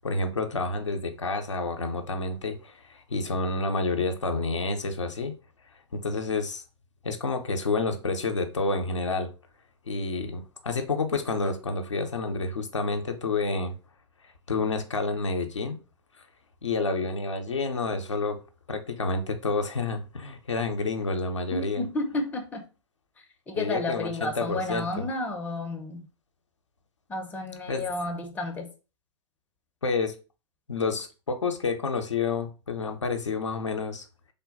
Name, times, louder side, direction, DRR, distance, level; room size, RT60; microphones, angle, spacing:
voice 1, 0.0-5.3 5.9-6.6 7.0-9.3 9.9-13.7 14.5-15.8 16.6-18.4 18.7-21.8 23.6-25.1 27.7-27.9 29.8-30.1 30.7-34.0, left 3 dB, 85° left, 0.5 m, -29 dB
voice 2, 21.5-22.7 23.2-26.1 27.1-28.7, left 2 dB, 10° left, 0.6 m, -32 dB
3.4 x 2.2 x 3.7 m
figure-of-eight pair, 105°, 15 cm